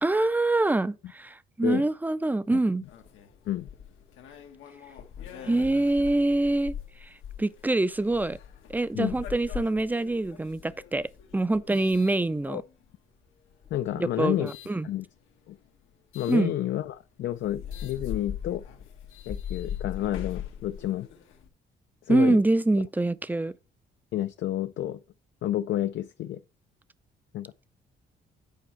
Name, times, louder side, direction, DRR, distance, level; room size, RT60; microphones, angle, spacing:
voice 1, 0.0-2.8 5.4-6.8 7.0-7.1 7.4-8.4 8.7-11.1 11.3-12.6 13.9-14.9 16.3-16.5 22.1-23.5, right 2 dB, 10° right, 0.4 m, -25 dB
sound 1, 2.8-12.9 13.5-14.8 16.1-16.4 16.9-17.0 17.3-21.5, left 9 dB, 85° left, 1.1 m, -41 dB
voice 2, 13.7-14.5 14.8-15.1 15.5-15.6 16.1-18.6 19.3-21.1 22.0-22.4 24.1-25.0 25.4-26.4 27.3-27.5, left 13 dB, 65° left, 0.4 m, -30 dB
8.4 x 4.7 x 4.4 m
cardioid pair, 90°, 20 cm